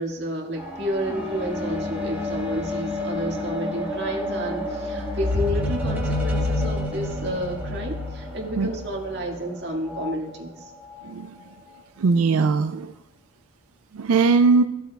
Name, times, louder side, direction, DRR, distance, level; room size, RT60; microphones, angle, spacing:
voice 1, 0.0-10.7, equal, 50° right, -1 dB, 2.0 m, -30 dB
sound 1, 0.6-10.1 10.9-11.0, left 1 dB, 10° right, 1.5 m, -29 dB
voice 2, 12.0-12.9 13.9-14.6, right 4 dB, 90° right, 9 dB, 0.4 m, -19 dB
15.0 x 7.8 x 2.3 m, 0.91 s
head